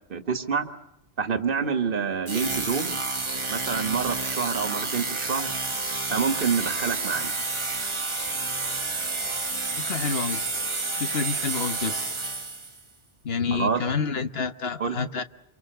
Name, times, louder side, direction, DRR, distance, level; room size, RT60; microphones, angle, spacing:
voice 1, 0.1-0.7 1.2-3.0 3.5-5.5 6.1-7.3 13.5-13.8 14.8-15.0, right 6 dB, 60° right, 7 dB, 1.7 m, -27 dB
sound 1, 2.3-12.8, right 3 dB, 30° right, 1.3 m, -30 dB
voice 2, 9.9-10.4 11.0-11.9 13.2-15.2, left 5 dB, 70° left, 9 dB, 1.4 m, -28 dB
28.5 x 25.0 x 6.8 m, 0.81 s
omnidirectional pair, 1.0 m